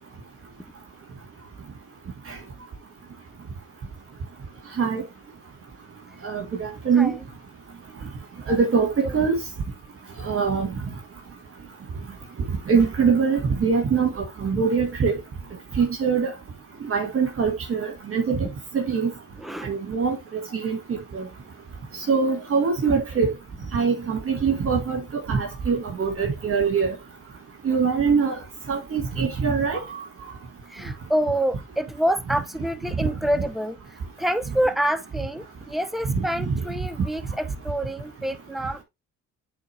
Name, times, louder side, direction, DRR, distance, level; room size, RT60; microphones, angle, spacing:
voice 1, 6.2-7.1 8.5-9.4 10.2-10.7 12.7-14.1 14.4-15.1 15.8-16.3 16.9-18.4 18.7-19.1 19.6-20.2 20.5-20.8 21.1-21.2 22.1-23.3 23.7-25.0 25.3-26.9 27.6-28.4 28.7-29.8 36.1-36.2, right 5 dB, 45° right, 2.0 m, -22 dB
voice 2, 9.0-9.3 19.4-19.7 22.9-23.0 30.7-38.8, right 1 dB, ahead, 0.9 m, -27 dB
8.5 x 3.9 x 3.4 m
cardioid pair, 90°, 30 cm